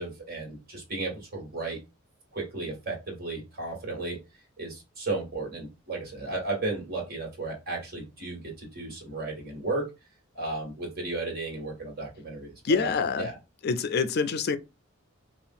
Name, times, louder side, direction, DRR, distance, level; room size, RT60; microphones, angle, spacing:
voice 1, 0.0-1.8 2.3-4.2 4.6-9.9 10.3-12.9 13.2-13.3, right 3 dB, 50° right, 1.9 m, -34 dB
voice 2, 12.6-13.3 13.6-14.6, left 5 dB, 50° left, 0.4 m, -26 dB
5.3 x 2.5 x 2.6 m
head